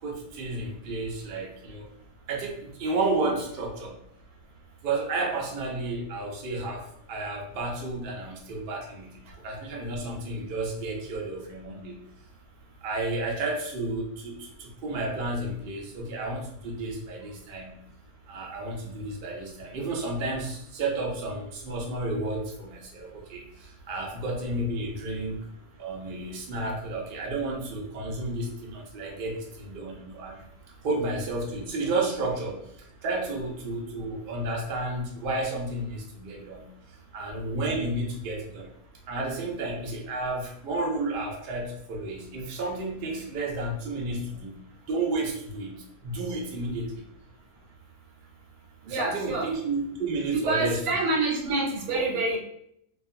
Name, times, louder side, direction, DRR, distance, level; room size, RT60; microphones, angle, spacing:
voice 1, 0.0-1.9 2.3-4.0 4.8-12.0 12.8-17.8 18.3-25.5 25.8-30.5 30.8-36.7 37.1-38.7 39.1-44.5 44.9-47.1 48.9-50.8 51.9-52.0, right 2 dB, 65° right, -1 dB, 0.5 m, -32 dB
voice 2, 48.9-49.5 50.5-52.4, right 2 dB, 85° right, 1 dB, 1.1 m, -27 dB
2.4 x 2.3 x 2.5 m, 0.72 s
omnidirectional pair, 1.6 m